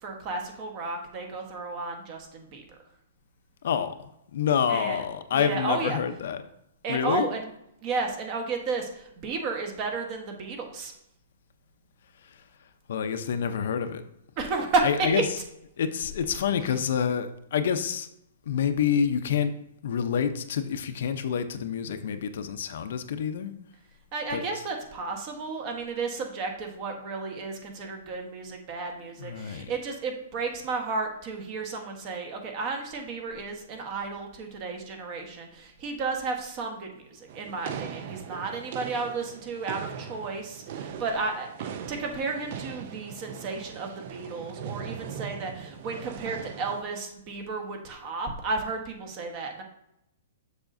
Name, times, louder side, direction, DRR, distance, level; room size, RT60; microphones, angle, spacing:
voice 1, 0.0-2.6 4.7-5.0 5.3-6.0 6.8-7.5 7.8-10.9 14.4-14.8 16.7-16.8 24.1-49.6, right 4 dB, 30° right, 3 dB, 1.2 m, -33 dB
voice 2, 3.6-3.9 4.3-6.4 6.9-7.3 12.9-14.0 14.8-15.4 15.8-18.1 18.5-19.5 19.8-23.5 24.3-24.6 29.2-29.7, left 7 dB, 65° left, 9 dB, 0.6 m, -27 dB
sound 1, 37.3-46.8, right 7 dB, 50° right, 0.5 m, -39 dB
7.1 x 6.5 x 2.6 m, 0.79 s
hypercardioid pair, 155°, 0 cm